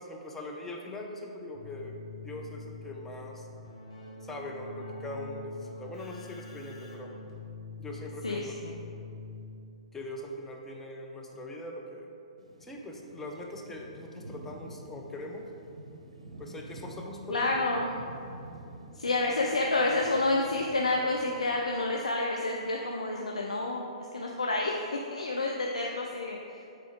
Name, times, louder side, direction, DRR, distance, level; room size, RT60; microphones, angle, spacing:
voice 1, 0.0-3.5 4.2-7.1 7.8-8.5 9.9-12.1 12.6-15.5 16.4-17.5, left 1 dB, 10° left, 0 dB, 0.6 m, -41 dB
Keyboard (musical), 1.5-9.9, left 3 dB, 60° left, 1.4 m, -45 dB
voice 2, 8.2-8.7 17.3-17.9 18.9-23.9 24.1-26.6, left 2 dB, 75° left, 0 dB, 0.5 m, -29 dB
sound 1, 12.4-21.7, right 2 dB, 65° right, 0.6 m, -48 dB
8.2 x 3.4 x 3.6 m, 2.6 s
figure-of-eight pair, 115°, 3 cm